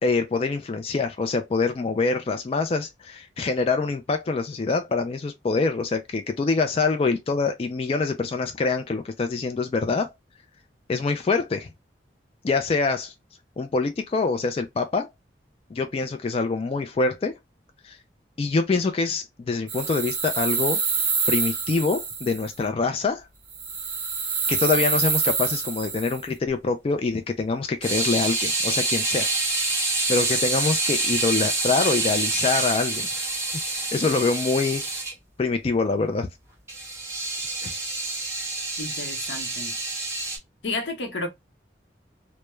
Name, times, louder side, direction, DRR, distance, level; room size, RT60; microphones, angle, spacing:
voice 1, 0.0-10.1 10.9-11.7 12.4-13.1 13.6-15.1 15.7-17.4 17.8-18.0 18.4-20.8 21.3-23.3 24.5-29.3 30.1-33.3 33.7-34.8 35.4-36.3 37.6-37.7, left 4 dB, 35° left, 0.3 m, -25 dB
sound 1, 19.7-22.5 23.5-26.2, right 5 dB, 50° right, 0.7 m, -26 dB
sound 2, 27.8-35.1 36.7-40.4, right 2 dB, 15° right, 0.8 m, -27 dB
voice 2, 38.8-39.8 40.6-41.3, left 2 dB, 90° left, 0.8 m, -31 dB
2.2 x 2.1 x 2.9 m
head